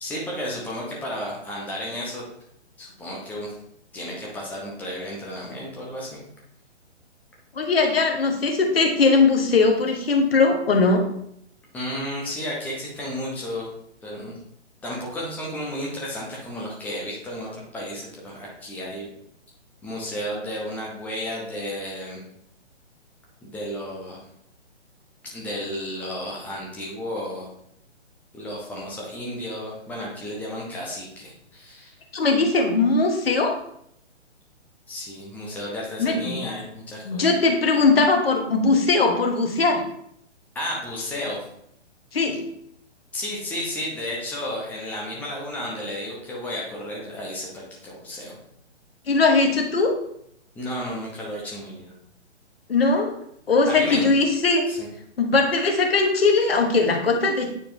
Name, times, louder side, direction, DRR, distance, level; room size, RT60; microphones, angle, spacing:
voice 1, 0.0-2.2 2.8-3.5 3.9-6.2 11.7-13.6 14.0-14.4 14.8-19.1 19.8-22.2 23.4-24.2 25.3-27.5 28.3-31.9 34.9-37.3 40.5-41.4 43.1-48.4 50.5-51.9 53.7-54.1 54.7-54.8, left 1 dB, 5° left, -3 dB, 0.9 m, -33 dB
voice 2, 7.5-11.0 32.1-33.6 36.0-36.4 37.0-39.8 42.1-42.4 49.1-49.9 52.7-53.1 53.5-54.6 55.2-57.5, left 3 dB, 55° left, 3 dB, 1.3 m, -20 dB
9.0 x 4.2 x 2.7 m, 0.71 s
figure-of-eight pair, 130°, 35 cm